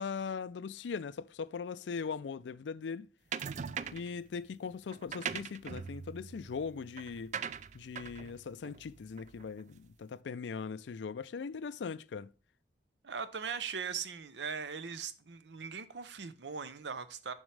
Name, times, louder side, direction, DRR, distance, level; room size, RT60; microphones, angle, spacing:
voice 1, 0.0-3.1 3.9-7.3 7.7-12.3, left 5 dB, 85° left, 0.4 m, -40 dB
sound 1, 3.3-4.2 4.9-9.6, right 7 dB, 45° right, 0.4 m, -41 dB
voice 2, 13.0-17.3, right 6 dB, 80° right, 0.7 m, -40 dB
7.2 x 6.2 x 3.2 m
head